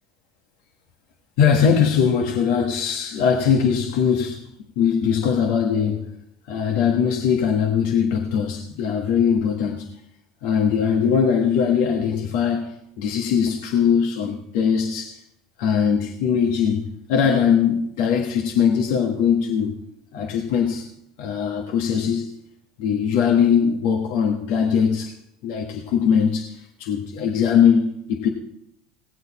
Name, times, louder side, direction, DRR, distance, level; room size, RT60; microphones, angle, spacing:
voice 1, 1.4-4.5 4.8-6.1 6.5-9.9 10.4-15.2 15.6-19.7 20.1-20.9 21.2-22.3 22.8-25.1 25.4-28.3, left 7 dB, 70° left, 1.4 m, -21 dB
19.0 x 7.9 x 4.2 m
hypercardioid pair, 85°, 0 cm